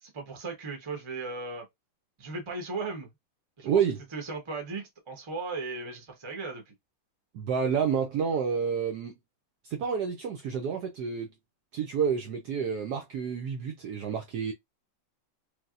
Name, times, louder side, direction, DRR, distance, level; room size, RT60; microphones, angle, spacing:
voice 1, 0.0-1.7 2.2-3.1 3.6-3.8 4.1-6.7, right 3 dB, 35° right, 0.4 m, -37 dB
voice 2, 3.6-4.0 7.3-9.1 9.6-11.3 11.7-14.5, right 7 dB, 75° right, 0.9 m, -29 dB
3.3 x 2.6 x 2.4 m
omnidirectional pair, 2.2 m